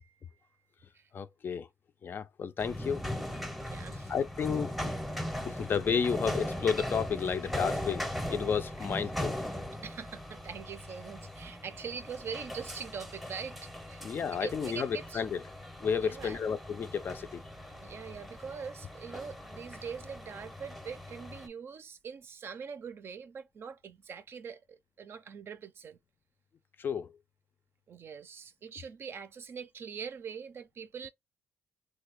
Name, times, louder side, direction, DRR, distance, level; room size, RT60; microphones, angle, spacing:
voice 1, 0.0-0.4 0.9-1.1 3.6-4.1 5.3-5.6 8.8-8.9 9.8-14.0 14.3-15.2 16.0-16.4 17.7-26.0 27.9-31.1, right 6 dB, 50° right, 0.5 m, -43 dB
voice 2, 1.1-1.7 2.0-3.0 4.1-4.9 5.4-9.4 14.0-15.4 15.8-17.4 26.8-27.1, left 6 dB, 45° left, 0.4 m, -32 dB
sound 1, 2.6-21.5, left 1 dB, ahead, 0.7 m, -39 dB
3.2 x 2.2 x 3.4 m
cardioid pair, 90°, 5 cm